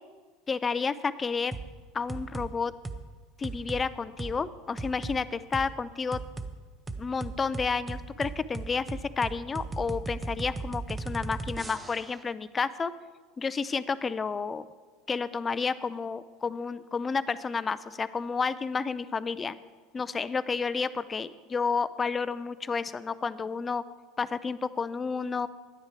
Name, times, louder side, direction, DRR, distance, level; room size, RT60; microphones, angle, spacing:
voice 1, 0.5-1.5 1.9-2.7 3.4-6.2 7.0-12.9 13.4-14.6 15.1-19.6 19.9-23.8 24.2-25.5, left 5 dB, 25° left, 15 dB, 0.5 m, -31 dB
sound 1, 1.5-1.7 2.1-2.5 2.8-3.0 3.4-3.8 4.2-4.3 4.8-5.2 5.5-5.7 6.1-6.5 6.9-12.2, right 3 dB, 15° right, 0.7 m, -36 dB
10.5 x 9.5 x 4.5 m, 1.4 s
hypercardioid pair, 80°, 0 cm